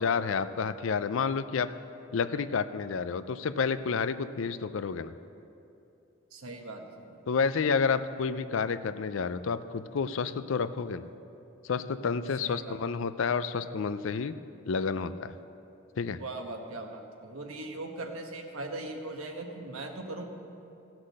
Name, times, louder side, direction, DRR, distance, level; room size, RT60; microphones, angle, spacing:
voice 1, 0.0-1.7 2.1-5.1 7.3-11.1 11.6-14.3 14.7-15.3 16.0-16.2, left 5 dB, 70° left, 13 dB, 0.4 m, -30 dB
voice 2, 6.3-7.2 12.4-12.7 16.2-20.2, right 2 dB, 85° right, 3 dB, 1.3 m, -39 dB
16.5 x 6.1 x 6.4 m, 2.8 s
head